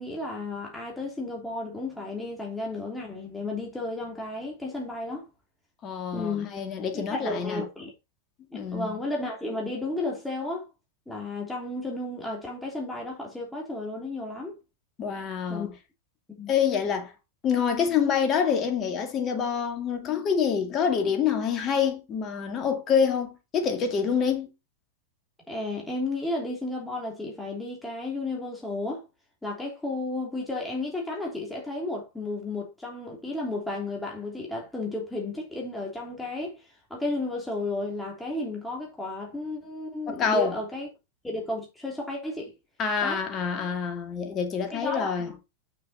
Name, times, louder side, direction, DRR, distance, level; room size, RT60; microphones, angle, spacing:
voice 1, 0.0-5.3 6.1-6.5 6.9-7.9 8.5-10.7 11.1-14.6 15.5-15.7 16.4-16.5 25.5-29.0 29.4-40.9 41.2-42.5 43.0-43.2 44.7-45.3, left 2 dB, 5° left, 3.0 m, -33 dB
voice 2, 5.8-7.6 8.5-9.0 15.0-15.7 16.5-17.1 17.4-24.5 40.1-40.5 42.8-45.3, left 7 dB, 35° left, 2.2 m, -26 dB
6.8 x 5.9 x 4.1 m
hypercardioid pair, 100°, 0 cm